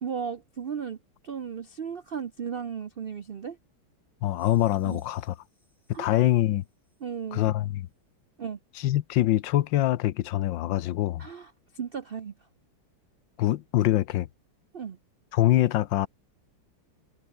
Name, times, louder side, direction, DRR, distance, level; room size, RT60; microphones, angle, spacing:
voice 1, 0.0-1.0 1.2-3.6 4.8-5.0 5.9-6.1 7.0-7.5 8.4-8.6 11.2-12.3 14.7-15.0, right 7 dB, 85° right, 0.5 m, -35 dB
voice 2, 4.2-5.3 6.0-6.6 7.3-7.9 8.8-11.3 13.4-14.3 15.3-16.1, left 14 dB, 75° left, 1.4 m, -24 dB
sound 1, 4.3-7.3, left 1 dB, 25° left, 7.2 m, -67 dB
omnidirectional pair, 2.1 m